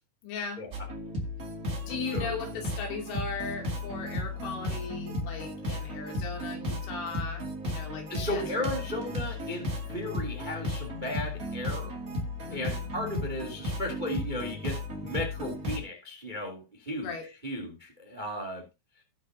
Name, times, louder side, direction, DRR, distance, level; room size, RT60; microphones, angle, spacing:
voice 1, 0.2-0.6 1.8-8.6 12.5-12.9 17.0-17.2, left 4 dB, 70° left, 1 dB, 5.1 m, -38 dB
sound 1, 0.7-15.8, left 1 dB, 75° right, 0.8 m, -35 dB
voice 2, 2.1-2.6 8.1-11.9 12.5-17.1 17.4-18.6, left 1 dB, 45° right, 1 dB, 0.6 m, -35 dB
18.5 x 6.3 x 2.7 m, 0.26 s
omnidirectional pair, 5.8 m